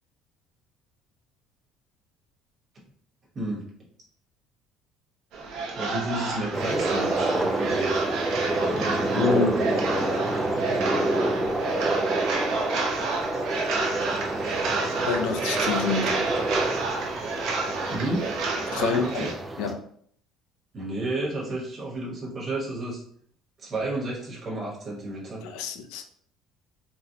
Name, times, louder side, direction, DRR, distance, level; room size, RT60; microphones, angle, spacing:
sound 1, 5.3-19.3, right 3 dB, 60° right, 0.8 m, -30 dB
voice 1, 5.7-8.0 17.9-18.2 18.7-19.3 20.7-23.0 23.6-25.4, right 2 dB, 25° right, 1.1 m, -31 dB
sound 2, 6.5-19.7, right 2 dB, 10° right, 0.3 m, -28 dB
voice 2, 9.1-9.8 15.1-16.3 18.7-19.3 19.6-19.8 25.4-26.0, left 6 dB, 85° left, 0.4 m, -27 dB
3.9 x 2.1 x 2.7 m
cardioid pair, 160°, 0 cm